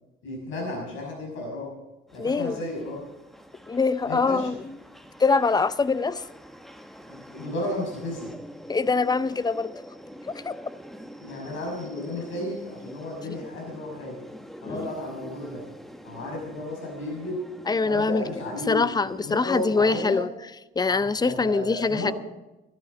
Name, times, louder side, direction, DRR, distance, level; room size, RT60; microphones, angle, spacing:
voice 1, 0.2-1.7 2.1-3.0 4.0-4.5 7.1-8.3 11.2-14.2 14.6-15.6 16.0-17.4 17.8-20.2 20.9-22.1, left 1 dB, 85° left, -1 dB, 6.0 m, -33 dB
sound 1, 2.1-20.1, equal, ahead, 1.0 m, -46 dB
voice 2, 2.2-2.6 3.7-4.6 5.2-6.2 8.7-9.7 10.3-10.5 14.6-14.9 17.7-18.2 18.7-20.3 20.8-22.1, left 4 dB, 20° left, 16 dB, 0.5 m, -23 dB
13.0 x 11.5 x 5.2 m, 1.0 s
cardioid pair, 90°, 20 cm